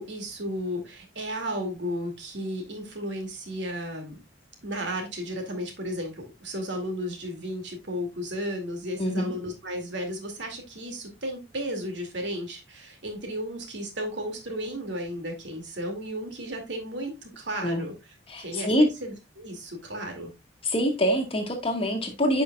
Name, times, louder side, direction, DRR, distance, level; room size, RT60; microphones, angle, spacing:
voice 1, 0.0-4.2 4.6-20.3, equal, 65° right, 2.2 m, -34 dB
voice 2, 9.0-9.3 17.6-17.8 18.3-18.9 20.6-22.4, equal, 30° left, 1.4 m, -25 dB
10.0 x 5.1 x 2.3 m
head